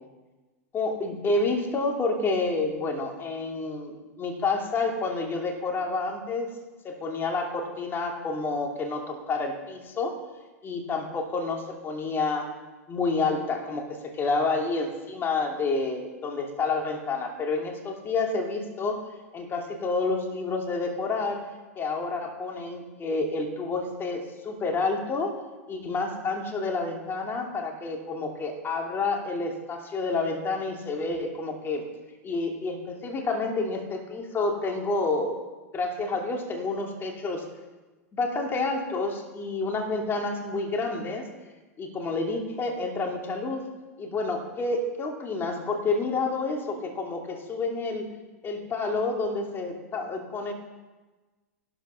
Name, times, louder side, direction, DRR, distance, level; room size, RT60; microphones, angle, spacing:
voice 1, 0.7-6.5 6.8-10.2 10.6-12.5 12.9-21.5 21.8-25.4 25.7-31.9 32.2-35.4 35.7-37.5 38.1-41.3 41.8-43.7 44.0-48.0 48.4-50.5, left 3 dB, 25° left, 2 dB, 2.8 m, -29 dB
13.5 x 12.5 x 5.7 m, 1.2 s
hypercardioid pair, 110°, 9 cm